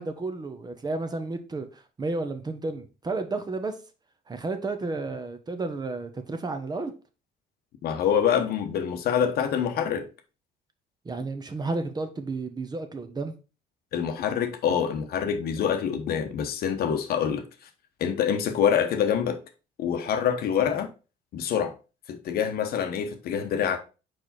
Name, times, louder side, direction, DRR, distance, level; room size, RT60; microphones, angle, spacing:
voice 1, 0.0-3.7 4.3-6.9 11.0-13.3, right 3 dB, 25° right, 0.9 m, -32 dB
voice 2, 7.8-10.1 13.9-17.4 18.0-19.4 19.8-20.9 21.3-21.7 22.1-23.8, left 8 dB, 65° left, 1.0 m, -26 dB
4.8 x 4.7 x 4.2 m
cardioid pair, 110°, 17 cm